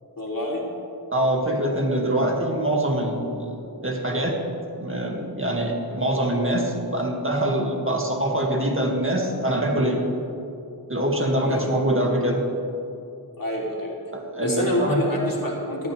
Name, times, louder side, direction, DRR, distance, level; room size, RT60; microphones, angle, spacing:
voice 1, 0.2-0.7 11.5-11.7 13.4-13.9 14.4-15.9, left 1 dB, 60° left, -3 dB, 3.2 m, -27 dB
voice 2, 1.1-4.4 4.8-10.0 10.9-12.5 14.1-15.1, right 1 dB, 30° right, 0 dB, 2.1 m, -24 dB
18.5 x 11.5 x 3.4 m, 2.7 s
wide cardioid pair, 45°, 39 cm